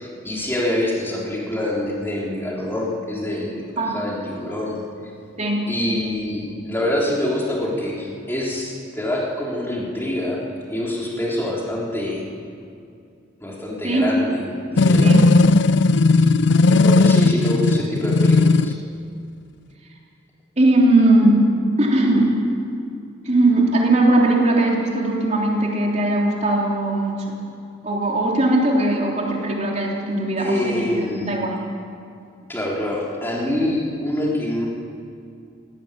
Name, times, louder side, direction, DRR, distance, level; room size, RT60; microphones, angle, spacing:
voice 1, 0.0-4.8 5.7-10.4 10.7-12.3 13.4-15.2 16.7-18.8 30.4-31.3 32.5-34.7, left 1 dB, 10° left, -4 dB, 3.8 m, -25 dB
sound 1, 14.8-18.8, left 3 dB, 55° left, 0.5 m, -15 dB
voice 2, 15.0-15.3 20.6-21.4 21.8-22.6 23.2-27.4 27.8-31.5, right 2 dB, 35° right, -2 dB, 3.5 m, -19 dB
17.5 x 17.5 x 9.2 m, 2.4 s
head